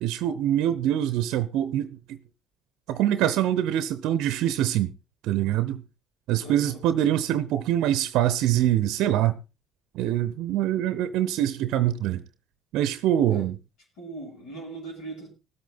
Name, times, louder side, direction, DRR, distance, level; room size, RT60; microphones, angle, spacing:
voice 1, 0.0-2.2 2.9-4.9 5.2-5.8 6.3-9.4 9.9-12.2 12.7-13.6, right 12 dB, 65° right, 0.7 m, -24 dB
voice 2, 6.4-6.8 13.3-13.5 14.0-15.3, right 2 dB, 70° left, 7.4 m, -39 dB
19.5 x 8.4 x 3.9 m
hypercardioid pair, 55°, 0 cm